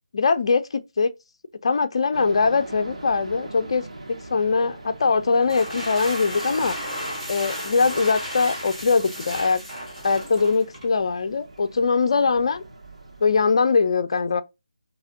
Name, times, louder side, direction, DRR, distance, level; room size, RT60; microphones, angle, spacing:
voice 1, 0.1-1.1 1.6-3.8 4.3-6.8 7.3-9.6 10.0-12.6 13.2-14.4, left 4 dB, 50° left, 0.4 m, -21 dB
sound 1, 2.1-13.5, right 2 dB, 70° right, 1.3 m, -42 dB
sound 2, 5.3-10.9, equal, 10° right, 2.3 m, -34 dB
4.7 x 2.9 x 2.6 m
figure-of-eight pair, 155°, 4 cm